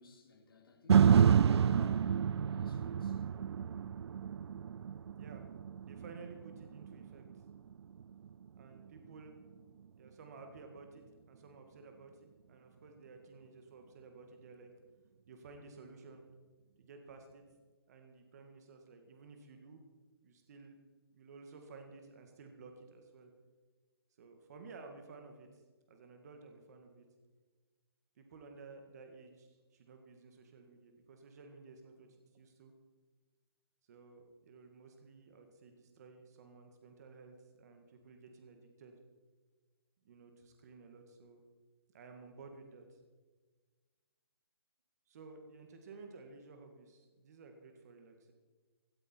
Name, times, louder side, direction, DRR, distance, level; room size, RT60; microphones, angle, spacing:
voice 1, 0.0-2.1 2.4-3.3, left 3 dB, 60° left, 3.1 m, -57 dB
sound 1, 0.9-9.1 9.5-9.6, right 8 dB, 90° right, 0.4 m, -30 dB
voice 2, 5.8-7.2 8.6-9.3 9.9-14.7 15.3-16.2 16.8-17.4 17.9-19.8 20.2-20.8 21.1-23.3 24.2-25.6 25.9-27.0 28.2-32.1 32.3-32.7 33.9-39.0 40.1-41.4 41.9-43.0 45.1-48.3, right 4 dB, 40° right, 1.9 m, -54 dB
16.5 x 14.0 x 4.5 m
hypercardioid pair, 165°, 13 cm